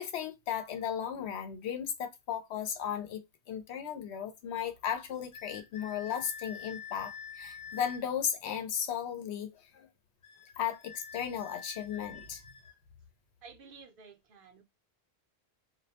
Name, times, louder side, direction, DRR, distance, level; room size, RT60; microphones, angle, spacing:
voice 1, 0.0-9.9 10.6-12.4, left 8 dB, 80° left, 0.9 m, -35 dB
sound 1, 5.3-8.1 10.2-12.8, left 7 dB, 50° left, 0.7 m, -47 dB
voice 2, 13.4-14.6, right 5 dB, 60° right, 0.7 m, -52 dB
2.3 x 2.1 x 2.7 m
omnidirectional pair, 1.1 m